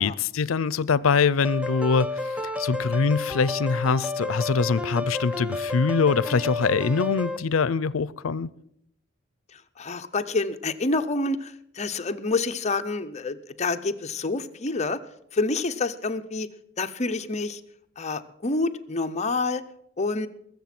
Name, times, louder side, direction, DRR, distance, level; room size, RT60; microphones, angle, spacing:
voice 1, 0.0-8.5, left 5 dB, 90° left, 0.5 m, -24 dB
sound 1, 1.4-7.4, left 2 dB, 5° right, 0.6 m, -31 dB
voice 2, 9.5-15.0 15.3-16.5 16.8-17.6 18.0-19.6 20.0-20.3, left 3 dB, 35° left, 0.7 m, -28 dB
21.5 x 7.4 x 6.0 m
head